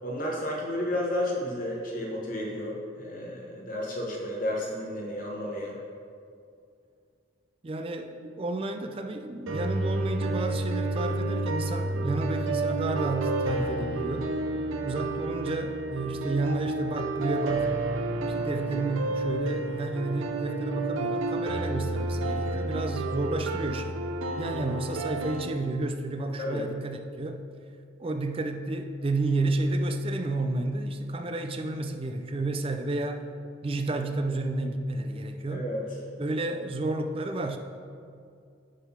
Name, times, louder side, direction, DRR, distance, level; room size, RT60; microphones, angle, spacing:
voice 1, 0.0-5.7 26.4-26.7 35.5-35.8, left 1 dB, 40° left, -2 dB, 1.0 m, -32 dB
voice 2, 7.6-14.3 14.8-17.7 18.3-24.0 24.4-27.4 28.0-33.3 33.6-35.7 36.2-37.6, right 2 dB, 25° right, 6 dB, 0.4 m, -31 dB
sound 1, 9.5-25.5, right 2 dB, 85° right, 0.6 m, -30 dB
10.0 x 3.9 x 5.5 m, 2.4 s
head